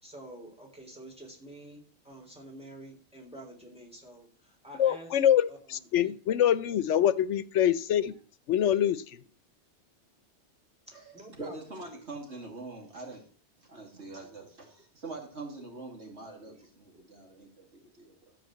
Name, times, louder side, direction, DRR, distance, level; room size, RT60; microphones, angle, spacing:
voice 1, 0.0-5.2 5.5-6.1 8.1-8.2 10.9-12.0 16.4-16.6 16.9-17.0, right 1 dB, 5° right, -1 dB, 3.8 m, -48 dB
voice 2, 4.8-8.1 8.5-9.0, left 10 dB, 90° left, 16 dB, 1.0 m, -25 dB
voice 3, 10.9-13.3 13.6-18.4, right 3 dB, 70° right, 2 dB, 2.9 m, -44 dB
14.0 x 4.7 x 7.7 m, 0.42 s
omnidirectional pair, 1.2 m